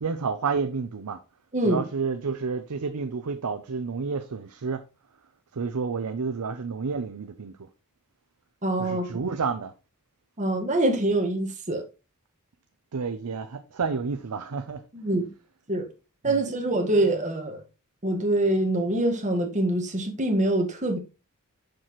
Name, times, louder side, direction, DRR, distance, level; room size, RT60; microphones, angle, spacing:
voice 1, 0.0-1.2 1.6-4.8 5.5-7.7 8.8-9.7 12.9-14.8 16.2-16.4, right 5 dB, 85° right, 0.6 m, -30 dB
voice 2, 8.6-9.1 10.4-11.8 14.9-15.3 15.7-15.8 16.2-17.6 18.0-21.0, right 1 dB, 35° right, 1.6 m, -24 dB
6.8 x 5.9 x 3.1 m
head